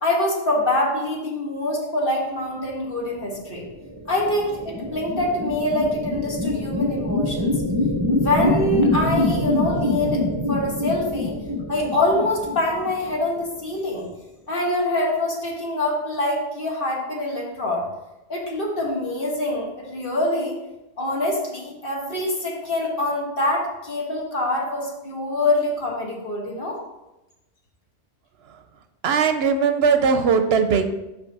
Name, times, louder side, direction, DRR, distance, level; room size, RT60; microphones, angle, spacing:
voice 1, 0.0-3.6 4.1-7.5 8.1-10.2 10.5-11.3 11.7-14.1 14.5-17.8 18.3-20.6 21.0-26.8, left 1 dB, 55° left, -2 dB, 1.7 m, -25 dB
sound 1, 3.6-13.4, left 2 dB, 25° right, 0.6 m, -25 dB
voice 2, 29.0-30.8, right 5 dB, 70° right, 8 dB, 0.8 m, -19 dB
6.2 x 5.5 x 4.6 m, 0.97 s
omnidirectional pair, 1.2 m